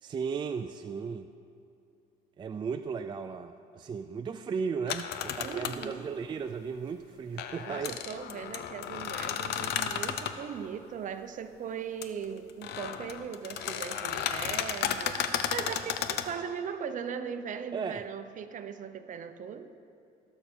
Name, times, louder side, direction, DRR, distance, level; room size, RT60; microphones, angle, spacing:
voice 1, 0.0-1.3 2.4-8.0 17.7-18.1, right 5 dB, 25° right, 7 dB, 0.4 m, -35 dB
sound 1, 4.9-5.9 7.4-10.4 12.0-12.1 12.5-16.3, left 9 dB, 75° left, 0.7 m, -33 dB
voice 2, 5.3-6.1 7.7-19.7, right 7 dB, 50° right, 9 dB, 0.7 m, -39 dB
17.5 x 6.7 x 4.5 m, 2.6 s
cardioid pair, 110°, 17 cm